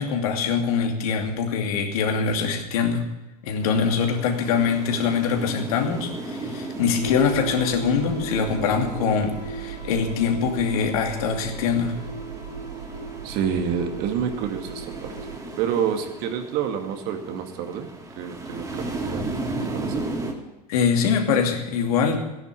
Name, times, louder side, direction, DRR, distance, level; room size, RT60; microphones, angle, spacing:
voice 1, 0.0-3.0 3.5-12.0 20.7-22.2, left 6 dB, 60° left, 3 dB, 2.7 m, -23 dB
sound 1, 3.6-20.3, right 2 dB, 15° right, 2.9 m, -36 dB
sound 2, 7.0-15.4, right 5 dB, 90° right, 3.2 m, -36 dB
voice 2, 13.2-15.1 15.6-17.9 18.2-19.4 19.7-20.0, right 8 dB, 50° right, 5 dB, 2.3 m, -28 dB
14.5 x 10.5 x 8.4 m, 1.0 s
hypercardioid pair, 90°, 21 cm